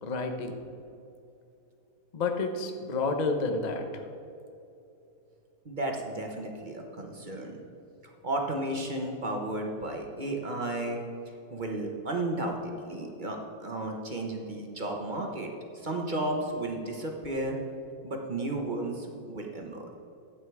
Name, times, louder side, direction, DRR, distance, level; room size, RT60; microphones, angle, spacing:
voice 1, 0.0-0.6 2.1-4.0, left 3 dB, 65° left, 5 dB, 0.4 m, -30 dB
voice 2, 5.6-7.5 8.2-11.0 11.5-17.6 18.0-20.0, right 1 dB, 35° right, 1 dB, 0.8 m, -33 dB
11.5 x 8.6 x 4.7 m, 2.7 s
omnidirectional pair, 2.3 m